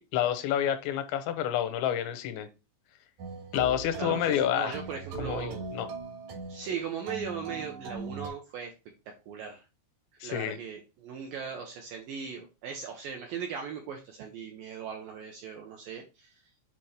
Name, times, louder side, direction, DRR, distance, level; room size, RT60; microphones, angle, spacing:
voice 1, 0.1-2.5 3.5-4.8 5.2-5.9 10.2-10.6, left 10 dB, 85° left, 10 dB, 3.1 m, -29 dB
sound 1, 3.2-8.3, right 3 dB, 55° right, 2.2 m, -39 dB
voice 2, 4.0-5.7 6.5-8.7 9.1-9.6 10.2-16.3, right 6 dB, 75° right, 3 dB, 2.1 m, -38 dB
8.1 x 4.2 x 3.3 m, 0.28 s
omnidirectional pair, 5.0 m